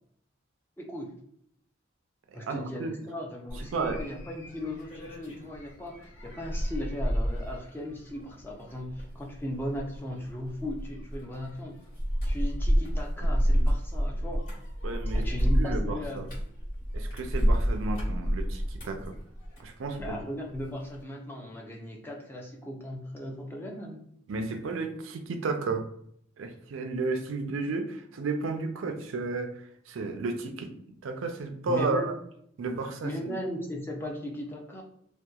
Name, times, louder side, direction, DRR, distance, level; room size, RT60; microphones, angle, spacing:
voice 1, 0.8-1.1 2.3-11.8 12.2-14.5 15.1-16.3 20.0-24.0 31.7-32.1 33.0-34.8, left 1 dB, 10° left, -1 dB, 0.4 m, -37 dB
voice 2, 2.4-3.0 3.5-4.0 14.8-15.2 15.5-16.3 16.9-19.1 19.6-20.2 24.3-25.9 26.4-32.1 32.6-33.4, right 3 dB, 85° right, 5 dB, 0.4 m, -33 dB
sound 1, 3.5-20.2 20.5-21.0, equal, 40° left, 1.2 m, -30 dB
2.8 x 2.1 x 2.2 m, 0.69 s
head